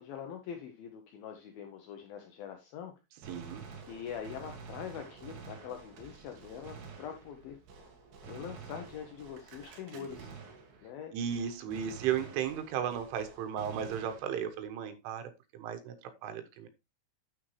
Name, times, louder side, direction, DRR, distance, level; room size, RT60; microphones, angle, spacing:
voice 1, 0.0-2.9 3.9-7.6 8.2-10.3 10.8-11.1, left 8 dB, 80° left, 2.1 m, -43 dB
Gunshot gunfire, 3.2-11.0 11.3-14.6, right 5 dB, 65° right, 3.7 m, -49 dB
voice 2, 3.3-3.7 9.9-10.1 11.1-16.7, right 8 dB, 90° right, 3.7 m, -35 dB
9.3 x 7.6 x 3.2 m
omnidirectional pair, 5.5 m